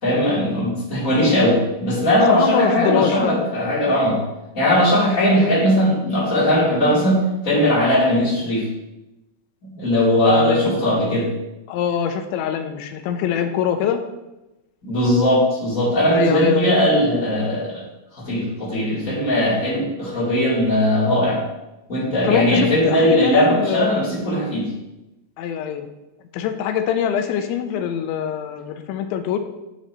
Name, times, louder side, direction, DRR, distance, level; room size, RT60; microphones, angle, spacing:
voice 1, 0.0-4.2 4.5-8.7 9.8-11.3 14.8-17.7 18.2-21.4 21.9-24.7, left 1 dB, 20° left, -9 dB, 3.4 m, -19 dB
voice 2, 2.3-3.4 10.3-10.7 11.7-14.0 16.1-16.8 22.2-24.0 25.4-25.9 26.3-29.4, left 8 dB, 85° left, 6 dB, 3.0 m, -23 dB
11.5 x 6.7 x 3.1 m, 0.97 s
omnidirectional pair, 5.4 m